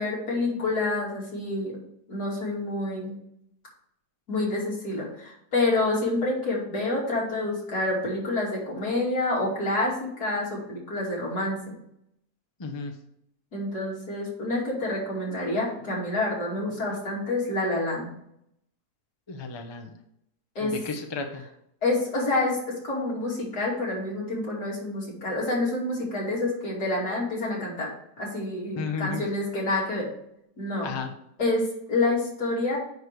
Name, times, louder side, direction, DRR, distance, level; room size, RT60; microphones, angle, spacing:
voice 1, 0.0-1.7 2.1-3.1 4.3-11.8 13.5-18.1 20.6-20.7 21.8-27.9 28.2-30.1 30.6-30.9 31.4-32.8, left 2 dB, 70° left, -5 dB, 3.3 m, -28 dB
voice 2, 12.6-12.9 19.3-20.0 20.6-21.4 28.8-29.2 30.8-31.1, left 4 dB, 25° left, 4 dB, 0.6 m, -33 dB
9.6 x 3.2 x 6.8 m, 0.74 s
omnidirectional pair, 1.7 m